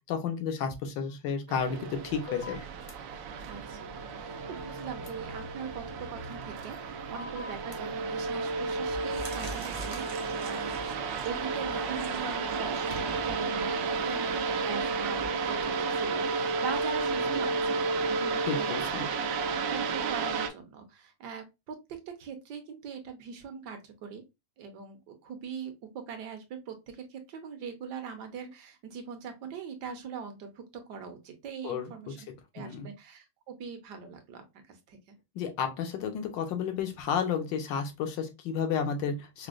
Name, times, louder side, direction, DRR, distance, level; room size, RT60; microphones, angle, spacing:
voice 1, 0.1-2.6 18.5-19.0 31.6-31.9 32.6-32.9 35.3-39.5, left 7 dB, 80° left, 1.4 m, -32 dB
sound 1, 1.5-20.5, right 4 dB, 85° right, 1.3 m, -32 dB
sound 2, 2.3-2.9 5.1-5.2 7.1-7.8, left 4 dB, 50° left, 0.5 m, -42 dB
voice 2, 3.4-10.8 11.2-14.3 14.6-19.1 19.7-24.2 24.6-32.3 32.5-35.0, right 6 dB, 70° right, 1.3 m, -42 dB
sound 3, 8.0-8.3 8.8-15.3, equal, 35° right, 0.6 m, -45 dB
4.9 x 2.0 x 2.4 m
omnidirectional pair, 2.0 m